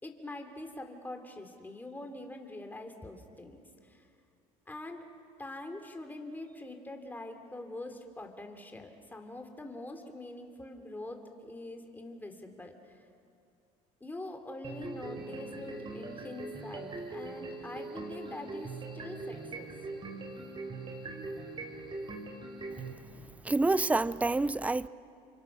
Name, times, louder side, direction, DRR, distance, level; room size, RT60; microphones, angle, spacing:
voice 1, 0.0-4.1 4.7-5.0 5.4-12.7 14.0-19.8, left 2 dB, 10° left, 4 dB, 3.2 m, -44 dB
sound 1, 14.6-22.9, right 3 dB, 30° right, 4.1 m, -41 dB
voice 2, 23.4-24.9, right 2 dB, 10° right, 17 dB, 0.5 m, -27 dB
29.0 x 24.5 x 6.3 m, 2.4 s
supercardioid pair, 100°, 16 cm